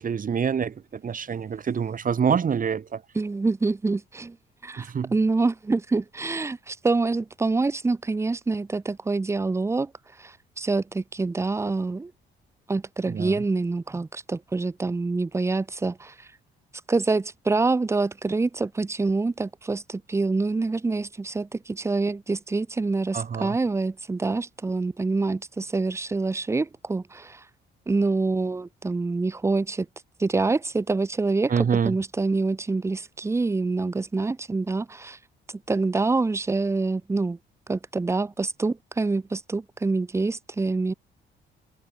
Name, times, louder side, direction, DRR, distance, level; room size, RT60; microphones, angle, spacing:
voice 1, 0.0-3.0 4.8-5.1 13.1-13.4 23.1-23.6 31.5-32.0, right 7 dB, 45° right, 2.0 m, -26 dB
voice 2, 3.2-4.4 4.6-9.9 10.2-12.1 12.7-16.1 16.9-27.4 27.9-29.9 30.2-31.5 31.8-35.2 35.7-37.4 37.7-40.9, right 3 dB, 15° right, 0.5 m, -26 dB
cardioid pair, 90°, 20 cm